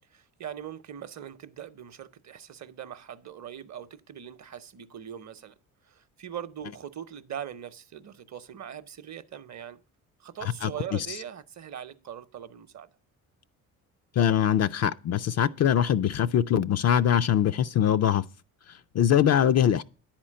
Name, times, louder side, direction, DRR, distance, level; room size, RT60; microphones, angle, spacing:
voice 1, 0.4-5.5 5.8-9.8 10.2-12.9, right 9 dB, 40° right, 0.8 m, -41 dB
voice 2, 14.2-18.2 18.7-19.8, left 9 dB, 40° left, 0.4 m, -23 dB
9.7 x 4.4 x 7.5 m
supercardioid pair, 65°, 41 cm